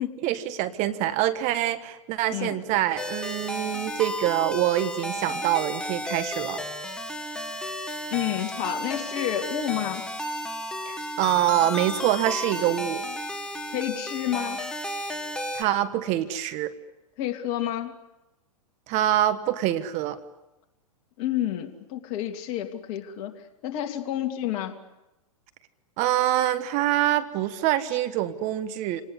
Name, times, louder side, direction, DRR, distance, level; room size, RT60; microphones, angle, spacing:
voice 1, 0.2-6.6 10.9-13.0 15.5-16.7 18.9-20.2 26.0-29.0, right 13 dB, 35° right, 12 dB, 1.4 m, -25 dB
sound 1, 3.0-15.6, left 1 dB, 5° left, 2.0 m, -33 dB
voice 2, 8.1-10.0 13.7-14.7 17.2-17.9 21.2-23.3 23.6-24.8, left 12 dB, 45° left, 4 dB, 2.9 m, -29 dB
27.0 x 19.0 x 9.8 m, 0.97 s
hypercardioid pair, 125°, 19 cm